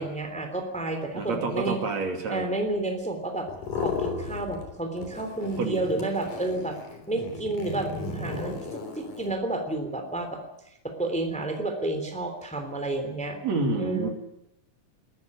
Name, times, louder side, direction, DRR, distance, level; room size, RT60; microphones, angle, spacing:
voice 1, 0.0-1.8 2.3-3.5 3.8-6.8 7.1-10.4 10.8-13.4 13.7-14.1, right 2 dB, ahead, 5 dB, 2.9 m, -30 dB
voice 2, 1.2-2.5 5.6-5.8 13.4-14.1, right 3 dB, 60° right, 3 dB, 3.8 m, -28 dB
sound 1, 3.5-4.7 5.0-9.3, left 4 dB, 85° left, 4.9 m, -35 dB
21.0 x 14.0 x 9.7 m, 0.83 s
omnidirectional pair, 3.6 m